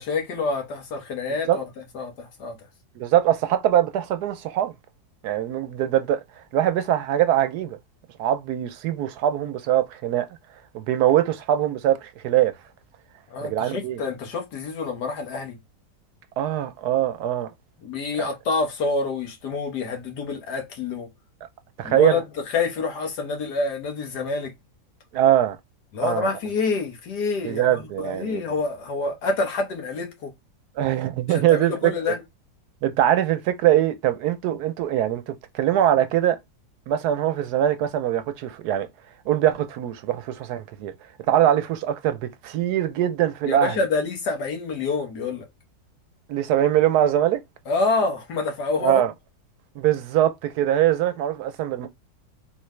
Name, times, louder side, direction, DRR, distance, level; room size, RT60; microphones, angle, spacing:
voice 1, 0.0-1.6 1.9-2.6 13.3-15.6 17.8-21.1 21.8-22.2 22.5-24.5 25.9-30.3 31.3-32.2 43.5-45.5 47.7-49.0, left 3 dB, 70° left, 1.6 m, -27 dB
voice 2, 3.0-4.7 5.2-6.2 6.5-7.8 8.2-10.3 10.7-12.5 13.4-14.0 16.4-17.5 18.2-18.3 21.8-22.2 25.1-25.6 26.0-26.3 27.4-28.4 30.8-32.1 32.8-36.4 36.9-38.9 39.3-40.9 41.3-43.8 46.3-47.4 48.8-49.1 49.8-51.9, right 12 dB, 75° right, 1.1 m, -22 dB
3.7 x 3.3 x 3.1 m
omnidirectional pair, 1.8 m